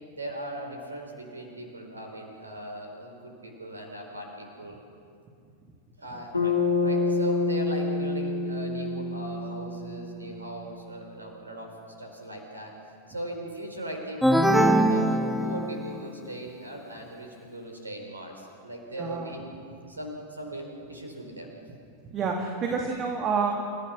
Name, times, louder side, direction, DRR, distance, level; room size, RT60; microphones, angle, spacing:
voice 1, 0.1-4.8 6.0-11.7 12.0-12.7 13.1-19.4 19.9-21.5, right 1 dB, 80° right, 3 dB, 4.5 m, -39 dB
Bass guitar, 6.3-10.7, left 3 dB, 80° left, 2.2 m, -28 dB
sound 1, 14.2-16.1, right 1 dB, ahead, 1.4 m, -22 dB
voice 2, 19.0-19.3 22.0-23.5, right 5 dB, 30° right, 1 dB, 2.3 m, -28 dB
28.5 x 15.5 x 6.4 m, 2.4 s
figure-of-eight pair, 90°, 0 cm